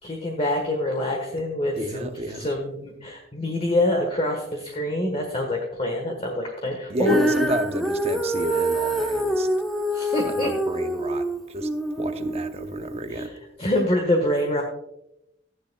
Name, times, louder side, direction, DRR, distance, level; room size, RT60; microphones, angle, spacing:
voice 1, 0.0-7.2 9.9-10.5 13.1-13.3 13.6-14.6, left 1 dB, 35° left, 1.3 m, -25 dB
voice 2, 1.8-2.5 6.9-9.5 10.2-13.4, right 1 dB, 35° right, 0.8 m, -31 dB
Female singing, 7.1-13.3, right 1 dB, ahead, 0.9 m, -26 dB
14.5 x 10.5 x 2.3 m
head